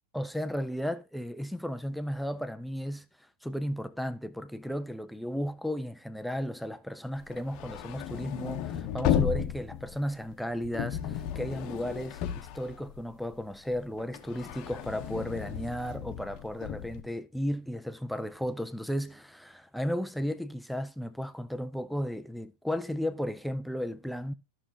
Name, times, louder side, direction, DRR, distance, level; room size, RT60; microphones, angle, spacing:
voice 1, 0.1-24.3, equal, ahead, 0.5 m, -34 dB
sound 1, 7.2-13.4 13.7-17.0, left 10 dB, 40° left, 0.9 m, -34 dB
13.0 x 6.1 x 2.8 m
figure-of-eight pair, 90°, 0 cm